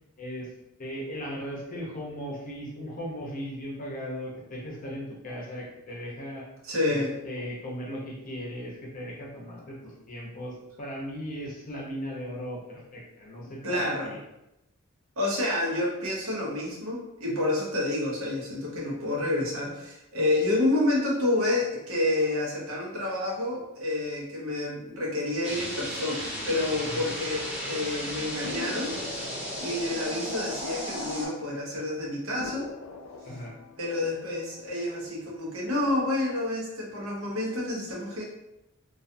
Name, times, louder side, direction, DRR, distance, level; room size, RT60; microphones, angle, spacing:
voice 1, 0.2-0.5 0.8-6.4 6.9-14.2 26.8-27.0 33.2-33.5, equal, 40° left, -3 dB, 0.6 m, -37 dB
voice 2, 6.6-7.2 13.6-14.2 15.2-29.2 29.6-32.7 33.8-38.2, left 2 dB, 70° right, -3 dB, 0.8 m, -29 dB
sound 1, 25.4-31.3, equal, 5° right, 0.8 m, -35 dB
sound 2, 28.4-31.5 31.8-31.9 32.4-35.3 35.7-36.3, left 3 dB, 85° left, 0.4 m, -44 dB
2.3 x 2.3 x 2.6 m, 0.91 s
head